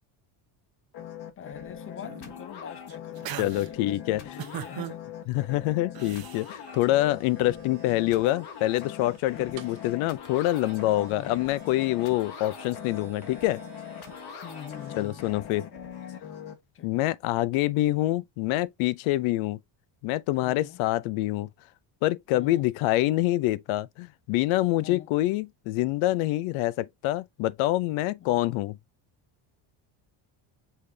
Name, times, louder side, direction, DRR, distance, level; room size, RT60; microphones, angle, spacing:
sound 1, 0.9-16.5, left 9 dB, 50° left, 1.4 m, -42 dB
voice 1, 1.4-5.0 9.3-9.6 11.1-11.4 14.4-15.3 16.7-17.1 20.4-20.8 22.3-22.7 24.8-25.1 28.2-28.4, left 9 dB, 30° left, 0.4 m, -44 dB
sound 2, 2.0-2.5 2.9-3.7 4.4-4.9 5.9-6.5, right 11 dB, 45° right, 0.9 m, -38 dB
voice 2, 3.4-4.4 5.3-13.6 14.9-15.7 16.8-19.6 20.0-21.5 22.0-28.8, left 16 dB, 80° left, 0.6 m, -26 dB
sound 3, 6.7-15.4, right 9 dB, 80° right, 1.5 m, -52 dB
5.6 x 3.3 x 2.7 m
cardioid pair, 135°, 49 cm